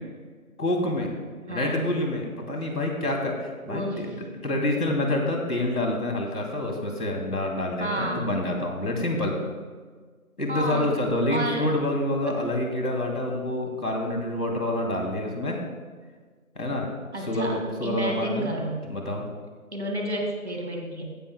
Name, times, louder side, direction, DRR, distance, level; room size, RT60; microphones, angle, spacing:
voice 1, 0.6-1.1 1.5-9.3 10.4-15.6 16.5-16.9 17.2-18.5 18.9-19.2, left 1 dB, 85° left, 1 dB, 2.8 m, -27 dB
voice 2, 1.5-1.8 3.7-4.0 7.8-8.2 10.5-10.9 11.3-11.7 12.3-12.4 17.1-18.8 19.7-21.0, right 1 dB, 50° right, 1 dB, 2.1 m, -30 dB
15.5 x 12.0 x 2.2 m, 1.5 s
figure-of-eight pair, 175°, 44 cm